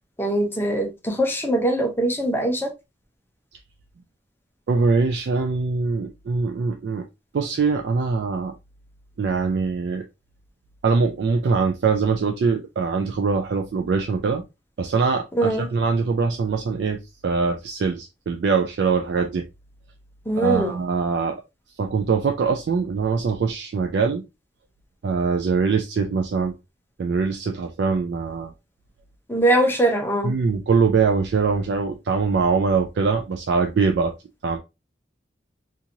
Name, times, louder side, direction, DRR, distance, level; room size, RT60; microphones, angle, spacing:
voice 1, 0.2-2.7 15.3-15.7 20.3-20.8 29.3-30.3, right 1 dB, 10° left, 0.6 m, -22 dB
voice 2, 4.7-7.1 7.3-8.5 9.2-10.1 10.8-14.4 14.8-19.4 20.3-21.3 21.8-24.2 25.0-26.5 27.0-28.5 30.2-34.1 34.4-34.6, right 4 dB, 70° right, 0.3 m, -23 dB
2.9 x 2.5 x 2.6 m
head